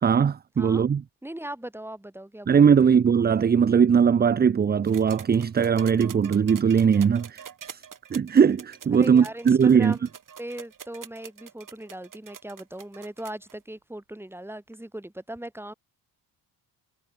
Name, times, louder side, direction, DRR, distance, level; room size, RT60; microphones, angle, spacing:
voice 1, 0.0-1.0 2.5-7.8 8.1-10.0, right 7 dB, 25° right, 0.5 m, -20 dB
voice 2, 1.2-2.9 8.9-10.0 10.4-15.7, right 1 dB, 5° right, 4.6 m, -39 dB
sound 1, 4.8-13.5 14.7-14.8, right 8 dB, 50° right, 5.8 m, -45 dB
cardioid pair, 95°, 42 cm